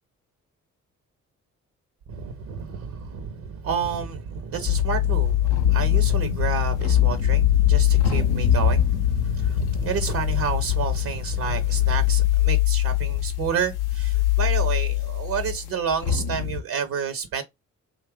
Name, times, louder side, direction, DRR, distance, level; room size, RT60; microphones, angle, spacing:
voice 1, 2.1-17.4, right 6 dB, 70° right, 0.7 m, -30 dB
sound 1, 4.7-16.6, left 11 dB, 85° left, 0.5 m, -22 dB
2.6 x 2.4 x 3.4 m
hypercardioid pair, 40°, 37 cm